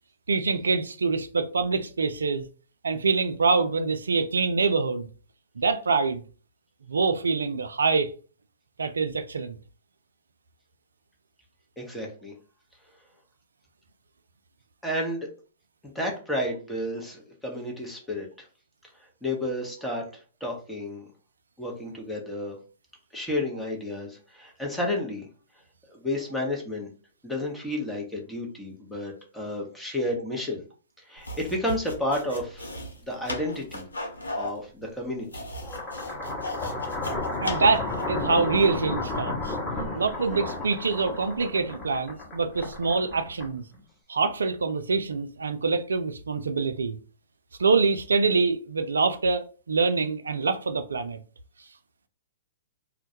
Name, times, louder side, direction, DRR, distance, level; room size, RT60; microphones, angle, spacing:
voice 1, 0.3-2.5 2.8-5.1 5.6-6.2 6.9-8.1 8.8-9.6 37.4-39.6 39.9-43.6 44.1-47.0 47.6-51.2, right 4 dB, 80° right, 0.3 m, -25 dB
voice 2, 11.8-12.3 14.8-15.3 15.8-18.5 19.2-20.0 20.4-21.1 21.6-22.6 23.1-25.3 25.9-26.9 27.2-30.6 31.0-32.7 33.0-33.8 34.3-35.3, left 1 dB, 5° left, 0.8 m, -31 dB
sound 1, 31.2-38.2, left 1 dB, 85° left, 0.6 m, -36 dB
sound 2, 35.5-43.8, left 2 dB, 25° left, 1.0 m, -32 dB
2.2 x 2.1 x 2.7 m
hypercardioid pair, 115°, 0 cm